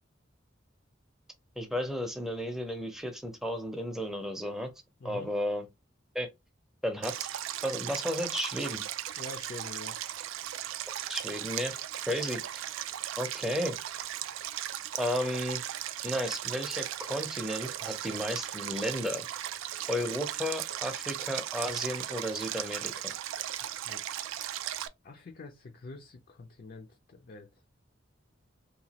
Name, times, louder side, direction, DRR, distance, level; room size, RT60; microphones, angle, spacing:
voice 1, 1.6-4.7 5.0-5.7 6.1-6.3 6.8-7.3 7.6-8.8 11.1-11.7 12.1-12.4 13.2-13.8 15.0-15.6 16.0-19.3 19.9-23.1, equal, ahead, 0.5 m, -33 dB
Stream, 7.0-24.9, right 12 dB, 85° right, 0.3 m, -37 dB
voice 2, 9.2-10.0 23.6-24.0 25.0-27.5, left 3 dB, 50° left, 0.4 m, -46 dB
2.9 x 2.2 x 2.8 m
head